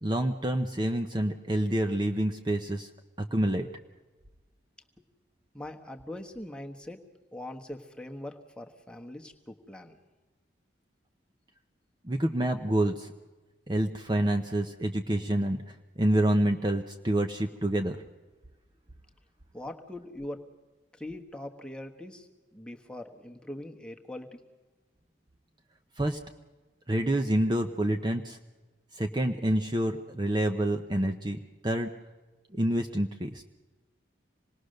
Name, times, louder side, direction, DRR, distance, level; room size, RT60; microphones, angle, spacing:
voice 1, 0.0-2.9 3.2-3.7 12.0-13.1 13.7-18.0 26.0-26.2 26.9-28.4 28.9-31.9 32.5-33.4, right 1 dB, 25° right, 4 dB, 0.8 m, -28 dB
voice 2, 5.5-7.0 7.3-10.0 19.5-20.4 20.9-24.4, left 1 dB, 5° left, 3 dB, 1.3 m, -42 dB
26.5 x 20.0 x 6.6 m, 1.2 s
head